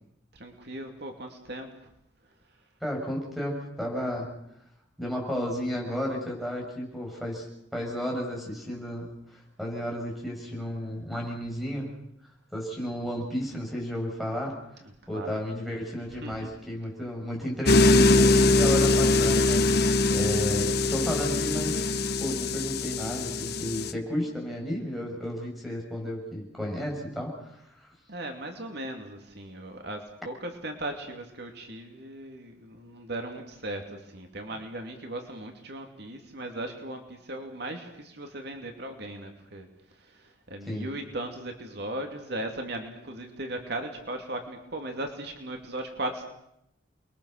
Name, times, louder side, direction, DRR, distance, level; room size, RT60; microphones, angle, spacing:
voice 1, 0.3-1.9 15.1-15.4 16.1-16.5 28.1-39.7 40.0-46.2, right 1 dB, 55° right, 4 dB, 2.9 m, -37 dB
voice 2, 2.8-4.3 5.0-7.5 7.7-11.9 12.5-14.5 15.1-21.8 22.2-27.5 27.7-27.9 40.7-40.9, equal, ahead, 0 dB, 7.0 m, -33 dB
sound 1, 17.6-23.9, left 2 dB, 55° left, 1.0 m, -22 dB
29.5 x 22.5 x 6.7 m, 0.79 s
head